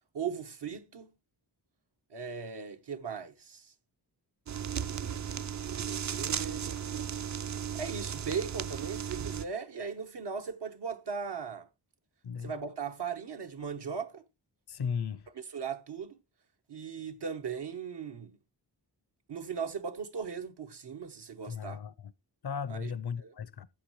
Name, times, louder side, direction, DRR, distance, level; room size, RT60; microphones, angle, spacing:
voice 1, 0.1-1.1 2.1-3.7 5.7-6.7 7.7-11.7 12.4-14.2 15.4-16.2 16.7-18.4 19.3-21.8 22.7-22.9 23.2-23.3, right 6 dB, 75° right, 1.0 m, -38 dB
sound 1, 4.5-9.5, right 8 dB, 45° right, 0.4 m, -35 dB
voice 2, 14.7-15.3 21.5-22.1 22.4-23.7, left 6 dB, 70° left, 0.6 m, -36 dB
13.5 x 8.3 x 3.1 m
wide cardioid pair, 115°, 41 cm